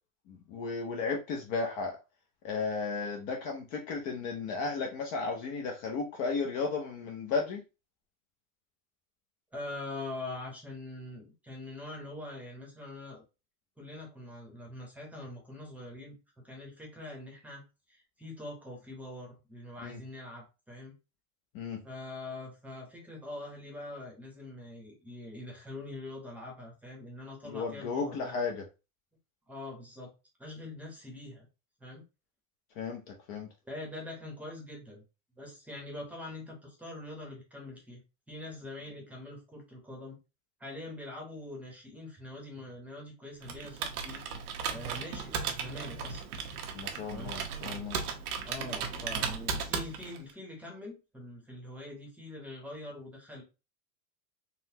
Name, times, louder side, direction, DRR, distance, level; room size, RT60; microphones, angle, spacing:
voice 1, 0.3-2.0 2.4-7.6 19.8-20.0 21.5-21.8 27.4-28.6 32.8-33.5 46.7-48.0, left 4 dB, 35° left, 0.5 m, -34 dB
voice 2, 9.5-13.2 13.8-16.1 16.4-17.6 17.9-20.9 21.8-28.3 29.5-30.1 30.4-31.5 31.8-32.0 33.6-35.0 35.4-38.0 38.3-40.2 40.6-44.4 44.7-46.2 47.0-47.3 48.4-53.4, left 2 dB, 5° right, 0.8 m, -43 dB
Computer keyboard, 43.4-50.3, right 6 dB, 90° right, 0.9 m, -36 dB
3.9 x 2.0 x 2.7 m
supercardioid pair, 140°, 43 cm